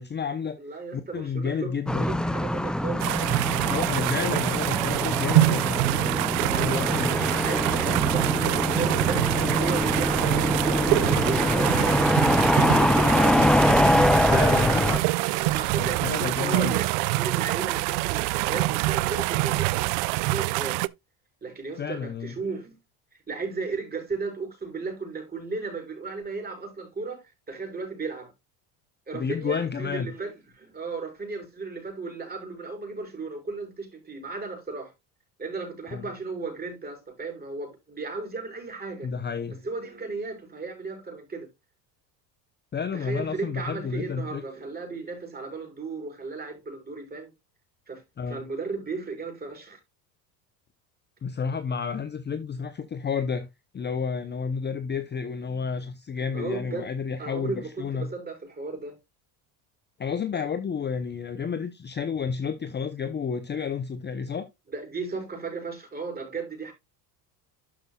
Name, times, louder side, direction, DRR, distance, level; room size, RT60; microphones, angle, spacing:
voice 1, 0.0-0.6 0.9-2.1 3.6-5.8 6.6-7.1 14.2-14.9 15.8-16.8 21.8-22.4 29.1-30.1 35.9-36.1 39.0-39.6 42.7-44.4 48.2-48.4 51.2-53.5 53.7-58.1 60.0-64.5, left 6 dB, 25° left, 0.8 m, -30 dB
voice 2, 0.6-1.7 2.0-3.1 6.4-9.3 9.6-12.1 12.4-13.1 14.2-19.9 20.2-20.8 21.4-22.8 23.3-28.3 29.1-34.9 35.4-39.1 39.5-41.5 42.9-47.3 47.9-49.8 56.3-56.9 57.2-59.0 64.7-66.7, right 4 dB, 20° right, 5.6 m, -35 dB
sound 1, 1.9-15.0, left 1 dB, ahead, 0.4 m, -24 dB
sound 2, 3.0-20.9, right 21 dB, 70° right, 0.5 m, -25 dB
12.5 x 5.9 x 2.3 m
supercardioid pair, 100°, 45 cm